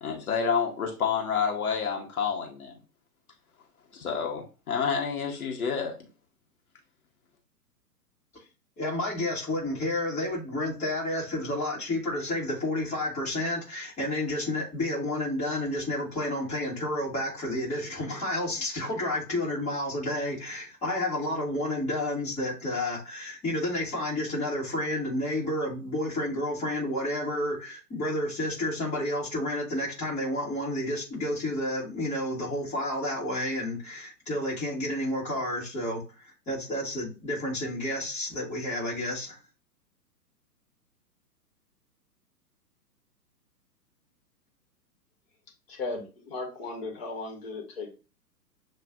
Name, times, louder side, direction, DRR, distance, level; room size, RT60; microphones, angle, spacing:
voice 1, 0.0-2.7 3.9-5.9, left 6 dB, 60° left, 1.0 m, -29 dB
voice 2, 8.8-36.0 36.5-39.4, left 1 dB, 15° left, 1.4 m, -30 dB
voice 3, 45.7-47.9, left 3 dB, 40° left, 1.2 m, -36 dB
7.2 x 2.4 x 2.4 m
figure-of-eight pair, 115°, 49 cm